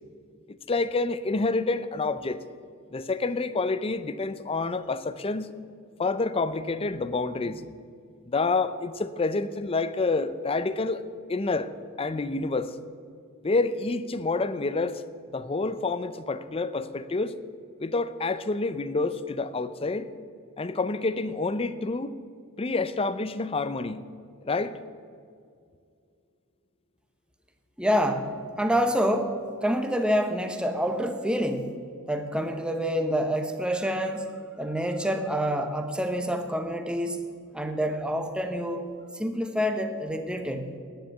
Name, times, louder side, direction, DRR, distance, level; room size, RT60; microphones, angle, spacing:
voice 1, 0.5-2.4 2.9-5.5 6.0-7.7 8.3-11.0 11.3-11.7 12.0-12.7 13.4-15.0 15.3-17.4 17.8-20.1 20.6-22.1 22.6-24.0 24.4-24.8, left 3 dB, 25° left, 0.5 m, -28 dB
voice 2, 27.8-31.8 32.1-37.2 37.5-38.9 39.1-40.7, equal, 5° right, 0.8 m, -27 dB
10.5 x 9.4 x 7.9 m
head